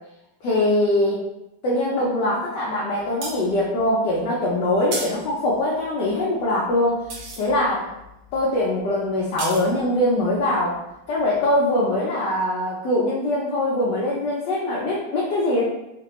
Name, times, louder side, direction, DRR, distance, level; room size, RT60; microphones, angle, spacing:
voice 1, 0.4-1.2 1.6-7.0 7.4-7.9 8.3-10.8 11.1-15.6, left 1 dB, 70° left, -5 dB, 1.0 m, -22 dB
sound 1, 3.0-11.5 11.9-12.0, right 2 dB, 80° right, 1.7 m, -37 dB
3.8 x 2.5 x 3.0 m, 0.89 s
omnidirectional pair, 2.4 m